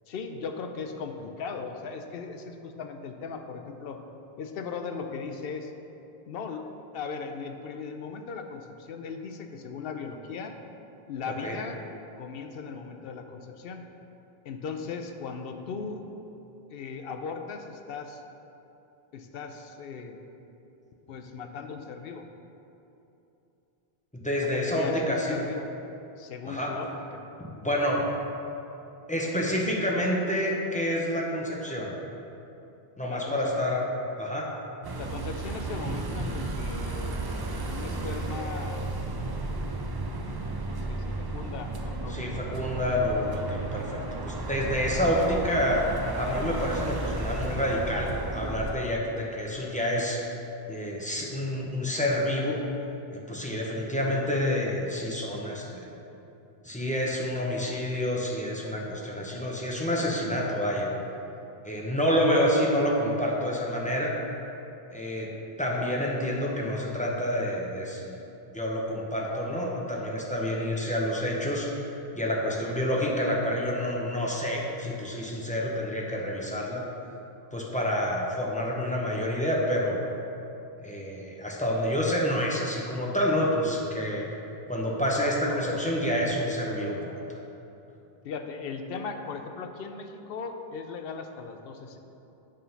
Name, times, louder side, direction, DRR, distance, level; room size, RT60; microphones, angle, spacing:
voice 1, 0.1-4.0 4.4-5.7 6.3-6.6 6.9-10.5 11.1-11.8 12.2-13.9 14.4-16.0 16.7-18.2 19.1-20.2 21.1-22.2 24.5-25.7 26.2-27.2 33.1-33.5 35.0-37.2 37.6-38.8 39.5-39.7 40.7-42.3 44.1-44.3 88.2-92.0, left 5 dB, 70° left, 6 dB, 0.8 m, -38 dB
voice 2, 24.1-25.4 26.4-26.8 27.4-28.1 29.1-31.9 33.0-33.8 34.2-34.5 42.1-45.9 46.1-50.2 50.7-52.6 53.1-55.9 56.6-60.9 61.6-64.1 64.9-65.3 65.6-68.2 68.5-71.7 72.1-76.8 77.5-80.0 80.8-84.3 84.7-87.2, equal, 10° left, -3 dB, 0.8 m, -28 dB
sound 1, 34.8-48.7, right 2 dB, 40° right, 0.3 m, -33 dB
8.3 x 3.8 x 5.6 m, 2.9 s
omnidirectional pair, 1.0 m